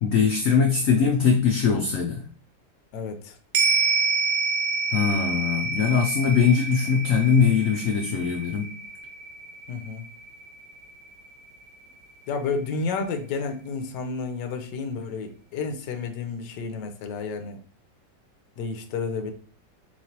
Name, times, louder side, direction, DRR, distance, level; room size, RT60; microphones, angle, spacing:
voice 1, 0.0-2.3 4.9-8.8, left 6 dB, 90° left, 4 dB, 0.7 m, -21 dB
voice 2, 2.9-3.4 6.2-6.5 9.7-10.1 12.3-17.6 18.6-19.3, left 4 dB, 75° left, 6 dB, 1.2 m, -31 dB
sound 1, 3.5-12.1 12.5-12.6, right 4 dB, 65° right, 1.1 m, -28 dB
4.4 x 3.1 x 2.8 m, 0.40 s
omnidirectional pair, 2.0 m